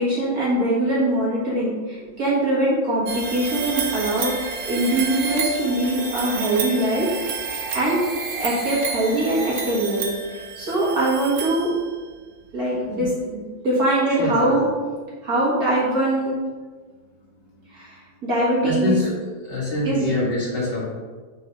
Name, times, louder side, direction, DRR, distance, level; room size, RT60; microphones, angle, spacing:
voice 1, 0.0-7.1 7.7-8.0 8.4-11.8 12.5-14.7 15.2-16.4 17.7-19.0 19.8-20.1, right 1 dB, 50° right, -7 dB, 1.9 m, -22 dB
sound 1, 3.1-12.1, right 5 dB, 65° right, 0.9 m, -30 dB
voice 2, 14.2-14.6 18.6-19.1 19.4-20.9, left 1 dB, 30° left, -7 dB, 2.1 m, -25 dB
4.7 x 4.5 x 5.2 m, 1.4 s
omnidirectional pair, 2.2 m